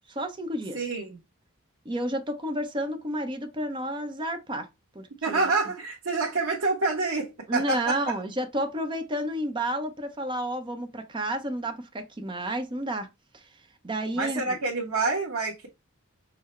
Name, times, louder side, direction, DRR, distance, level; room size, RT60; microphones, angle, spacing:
voice 1, 0.1-0.8 1.8-4.7 4.9-5.5 7.5-13.1 13.3-13.5 13.8-14.6, right 1 dB, 20° right, 0.7 m, -31 dB
voice 2, 0.7-1.2 5.2-8.0 14.2-15.7, right 3 dB, 90° right, 1.1 m, -27 dB
5.7 x 2.1 x 4.2 m
head